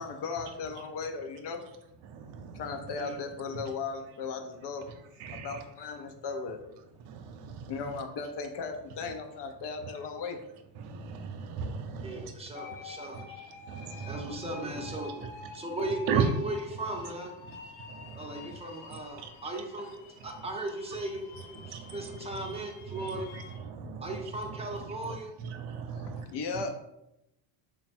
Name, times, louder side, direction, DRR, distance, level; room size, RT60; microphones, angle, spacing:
voice 1, 0.0-1.6 2.5-4.8 5.3-6.6 7.7-10.4 25.9-26.7, left 4 dB, 55° left, 5 dB, 0.7 m, -36 dB
voice 2, 2.0-2.6 5.2-5.6 7.1-7.7 10.8-12.3 13.1-13.2 13.7-14.4 16.1-16.2 17.9-18.6 19.2-19.3 21.6-22.4 22.9-24.2 24.4-26.3, right 7 dB, 80° right, 7 dB, 0.7 m, -37 dB
voice 3, 12.0-13.4 13.8-17.5 18.1-19.9 20.2-23.3 24.0-25.3, right 1 dB, 15° right, 1 dB, 0.6 m, -37 dB
sound 1, 12.5-23.6, left 4 dB, 85° left, 0.8 m, -48 dB
3.4 x 2.2 x 4.1 m, 0.85 s
cardioid pair, 105°, 49 cm